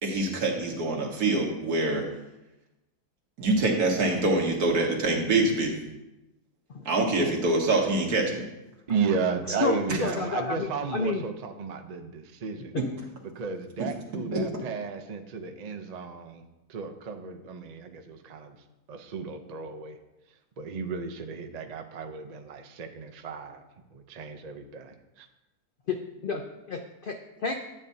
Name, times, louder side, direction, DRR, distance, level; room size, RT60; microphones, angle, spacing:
voice 1, 0.0-2.0 3.4-5.7 6.9-8.4 9.9-10.0 12.8-12.9 13.8-13.9 14.3-14.4, right 2 dB, 75° right, 0 dB, 1.9 m, -25 dB
voice 2, 8.9-12.8 13.3-16.4 16.7-18.6 18.9-20.0 20.6-23.6 23.9-25.3, right 5 dB, 60° right, 5 dB, 0.4 m, -33 dB
voice 3, 9.6-11.2 25.9-26.0 26.2-27.6, left 4 dB, 70° left, 4 dB, 0.5 m, -30 dB
9.6 x 8.5 x 2.7 m, 0.97 s
omnidirectional pair, 1.6 m